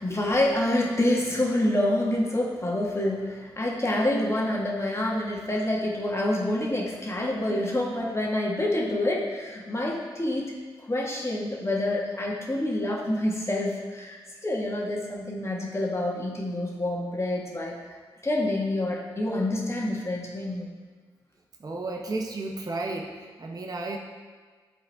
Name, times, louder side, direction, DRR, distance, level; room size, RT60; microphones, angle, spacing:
voice 1, 0.0-10.5 10.8-17.9 18.2-20.7, left 1 dB, 25° left, -3 dB, 1.6 m, -27 dB
voice 2, 21.6-24.0, right 2 dB, 40° right, 0 dB, 0.8 m, -33 dB
9.2 x 3.7 x 3.5 m, 1.5 s
supercardioid pair, 45°, 10 cm